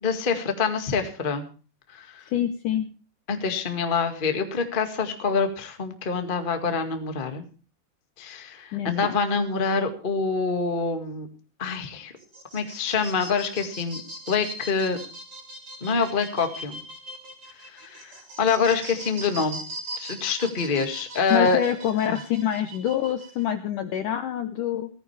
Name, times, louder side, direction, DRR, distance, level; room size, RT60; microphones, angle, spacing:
voice 1, 0.0-1.4 1.9-2.2 3.3-7.4 8.2-11.3 11.6-12.1 12.5-14.0 14.3-15.0 15.8-16.8 17.7-19.6 20.0-21.6 22.1-22.2, left 5 dB, 45° left, 6 dB, 0.6 m, -26 dB
voice 2, 2.3-2.9 8.7-9.2 21.3-24.9, left 10 dB, 75° left, 9 dB, 1.9 m, -26 dB
sound 1, 12.2-23.4, right 1 dB, 35° right, 4.2 m, -40 dB
18.5 x 14.5 x 3.3 m, 0.37 s
omnidirectional pair, 4.8 m